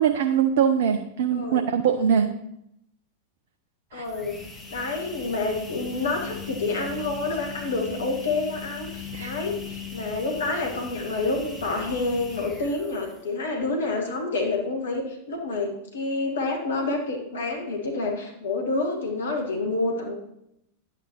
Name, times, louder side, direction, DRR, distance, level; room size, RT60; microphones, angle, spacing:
voice 1, 0.0-2.3 3.9-4.0 9.1-9.3, right 8 dB, 55° right, 7 dB, 0.6 m, -22 dB
voice 2, 1.3-1.6 3.9-4.4 4.7-20.1, left 3 dB, 65° left, 2 dB, 1.4 m, -28 dB
sound 1, 3.9-13.4, left 6 dB, 10° left, 2.5 m, -39 dB
10.5 x 9.0 x 3.0 m, 0.79 s
figure-of-eight pair, 90°, 0 cm